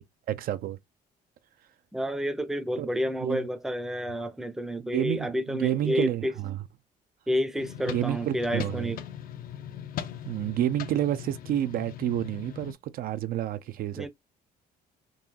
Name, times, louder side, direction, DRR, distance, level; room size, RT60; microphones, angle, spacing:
voice 1, 0.3-0.8 2.8-2.9 3.2-3.4 4.9-6.6 7.9-8.9 10.3-14.1, right 12 dB, 60° right, 0.4 m, -29 dB
voice 2, 1.9-6.3 7.3-9.0 14.0-14.1, equal, 5° right, 0.5 m, -30 dB
sound 1, 7.6-12.7, left 10 dB, 60° left, 0.5 m, -40 dB
3.8 x 2.6 x 2.8 m
cardioid pair, 110°, 17 cm